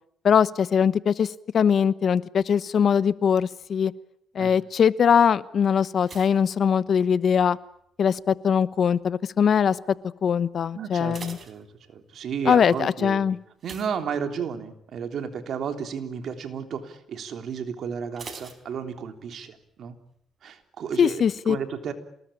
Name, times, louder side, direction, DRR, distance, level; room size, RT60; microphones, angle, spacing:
voice 1, 0.2-3.9 4.3-7.6 8.0-9.8 10.2-11.4 12.4-13.4 21.0-21.6, left 7 dB, 55° left, 16 dB, 1.1 m, -21 dB
sound 1, 6.0-7.5 7.7-8.3 8.9-9.2 9.5-9.6 10.0-10.1 10.8-12.3 13.6-14.7 15.1-15.4 15.7-15.8 18.2-19.4 19.6-19.7, right 4 dB, 40° right, 4.2 m, -45 dB
voice 2, 10.7-13.3 13.6-20.0 20.4-21.9, right 7 dB, 65° right, 7 dB, 3.5 m, -33 dB
27.5 x 20.0 x 8.8 m, 0.72 s
cardioid pair, 90°, 0 cm